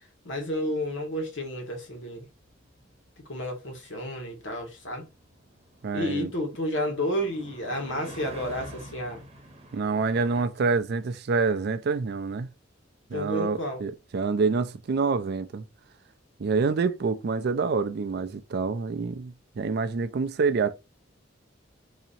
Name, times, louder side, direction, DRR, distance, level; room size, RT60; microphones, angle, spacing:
voice 1, 0.2-2.2 3.3-5.0 5.9-9.2 13.1-13.8, left 1 dB, 75° left, 1.3 m, -31 dB
sound 1, 2.1-10.4, right 1 dB, 35° right, 0.9 m, -47 dB
voice 2, 5.8-6.3 9.7-12.5 13.1-15.6 16.4-20.7, right 4 dB, 60° right, 0.4 m, -27 dB
4.1 x 2.8 x 2.5 m
head